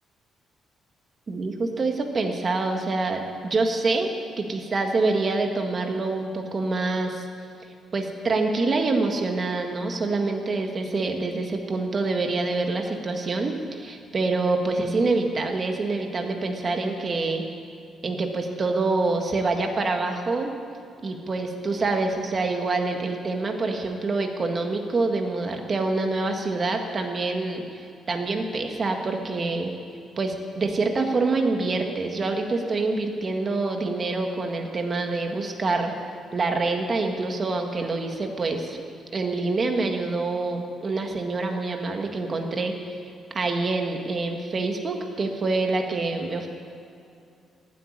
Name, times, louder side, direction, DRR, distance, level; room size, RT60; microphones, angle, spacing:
voice 1, 1.3-4.1 4.4-7.2 7.9-17.5 18.0-20.5 21.0-29.7 30.2-35.9 36.3-38.8 39.1-43.0 43.3-46.5, right 3 dB, 35° right, 4 dB, 1.7 m, -26 dB
15.0 x 8.4 x 9.9 m, 2.5 s
cardioid pair, 130°, 0 cm